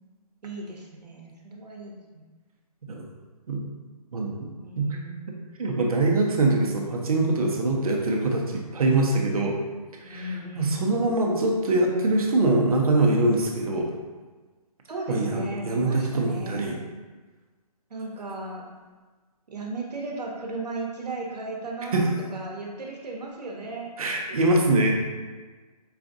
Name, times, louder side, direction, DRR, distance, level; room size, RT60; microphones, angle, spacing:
voice 1, 0.4-2.2 4.6-5.5 10.0-11.0 14.9-16.8 17.9-18.7 19.5-24.6, right 2 dB, 90° right, -1 dB, 0.9 m, -36 dB
voice 2, 4.1-4.5 4.8-4.9 5.6-9.6 10.0-10.2 10.5-13.9 15.1-16.8 21.9-22.0 24.0-24.9, right 2 dB, 65° right, 0 dB, 0.8 m, -23 dB
4.9 x 2.4 x 2.5 m, 1.3 s
hypercardioid pair, 160°, 20 cm